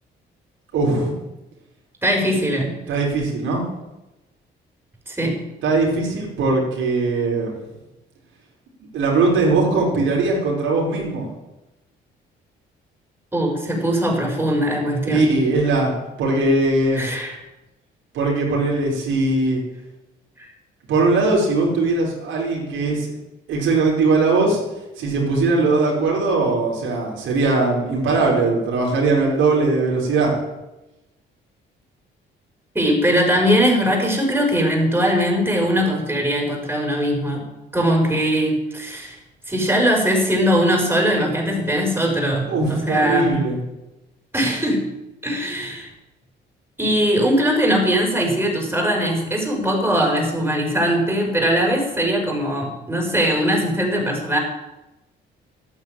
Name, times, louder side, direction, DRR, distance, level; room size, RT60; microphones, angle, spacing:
voice 1, 0.7-1.2 2.9-3.6 5.6-7.5 8.9-11.3 15.0-15.9 16.2-17.0 18.1-19.6 20.9-23.2 23.5-24.6 25.0-30.3 42.5-43.6, right 3 dB, 85° right, -3 dB, 5.1 m, -20 dB
voice 2, 2.0-2.8 5.1-5.4 13.3-15.2 17.0-17.4 32.7-37.5 37.7-39.2 39.5-43.3 44.3-44.9 45.2-45.9 46.8-54.4, equal, 10° right, 0 dB, 5.6 m, -20 dB
12.5 x 9.5 x 9.1 m, 0.99 s
cardioid pair, 90°, 20 cm